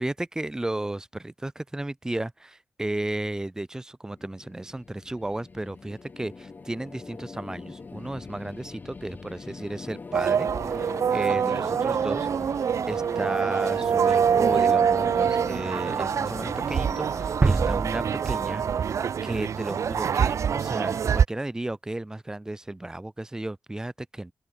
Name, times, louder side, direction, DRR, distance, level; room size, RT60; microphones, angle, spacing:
voice 1, 0.0-12.3 12.9-18.7 19.2-24.3, right 1 dB, 10° right, 1.1 m, -34 dB
sound 1, 4.1-19.1, left 4 dB, 35° left, 2.8 m, -41 dB
sound 2, 10.1-21.2, right 7 dB, 75° right, 0.9 m, -25 dB
sound 3, 17.4-19.3, right 4 dB, 30° right, 0.7 m, -26 dB
open air
wide cardioid pair, 180°, 5 cm